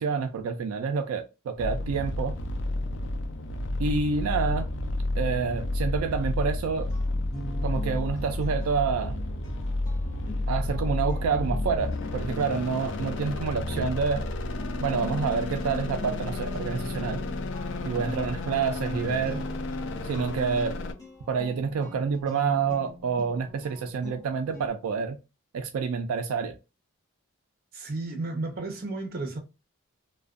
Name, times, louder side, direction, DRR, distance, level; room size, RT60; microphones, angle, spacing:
voice 1, 0.0-2.4 3.8-4.7 5.2-6.9 7.6-9.1 10.5-14.2 14.8-17.2 17.8-19.5 20.0-20.8 21.3-25.2 25.5-26.6, right 5 dB, 80° right, 0.3 m, -28 dB
sound 1, 1.6-20.9, left 2 dB, 55° left, 0.3 m, -31 dB
sound 2, 6.9-24.7, left 1 dB, 15° left, 0.7 m, -43 dB
voice 2, 27.7-29.4, right 2 dB, 45° right, 0.7 m, -33 dB
2.4 x 2.2 x 2.4 m
head